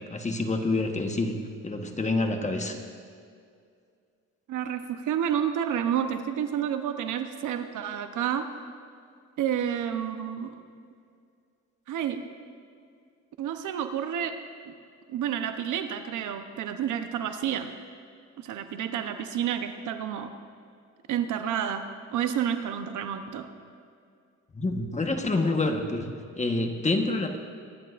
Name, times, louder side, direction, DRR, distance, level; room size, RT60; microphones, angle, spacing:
voice 1, 0.1-1.4 1.6-2.8 24.5-26.1 26.4-27.4, left 2 dB, 25° left, 4 dB, 1.2 m, -27 dB
voice 2, 4.5-8.5 9.4-10.6 11.9-12.2 13.4-14.4 14.7-14.8 15.1-17.7 18.4-20.3 21.1-21.9 22.1-23.5, right 9 dB, 80° right, 8 dB, 0.9 m, -30 dB
23.5 x 11.0 x 2.5 m, 2.3 s
cardioid pair, 90°, 30 cm